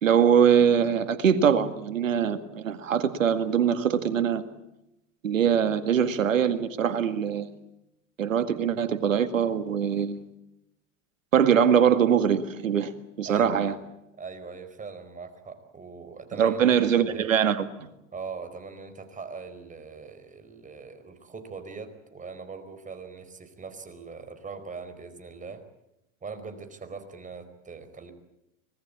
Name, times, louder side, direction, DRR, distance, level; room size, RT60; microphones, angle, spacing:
voice 1, 0.0-4.4 5.2-7.5 8.2-10.2 11.3-12.9 13.2-13.7 16.4-17.9, right 8 dB, 85° right, 11 dB, 2.1 m, -23 dB
voice 2, 13.2-13.8 14.2-16.8 17.1-17.3 18.1-25.6 26.2-28.1, right 5 dB, 20° right, 8 dB, 4.7 m, -41 dB
25.5 x 20.0 x 8.6 m, 0.88 s
hypercardioid pair, 90°, 38 cm